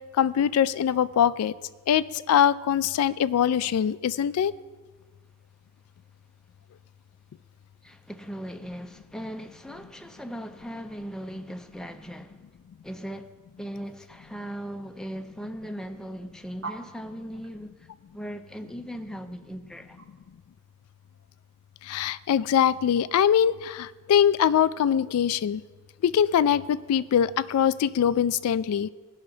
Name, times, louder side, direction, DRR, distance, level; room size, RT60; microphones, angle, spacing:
voice 1, 0.2-1.5 1.9-4.5 21.9-25.6 26.0-28.9, left 9 dB, 85° left, 0.3 m, -23 dB
voice 2, 7.8-12.4 12.8-13.3 13.6-17.7 18.1-20.0, equal, 5° left, 0.4 m, -38 dB
sound 1, 16.6-21.2, right 4 dB, 65° right, 1.2 m, -44 dB
16.5 x 5.7 x 3.9 m
head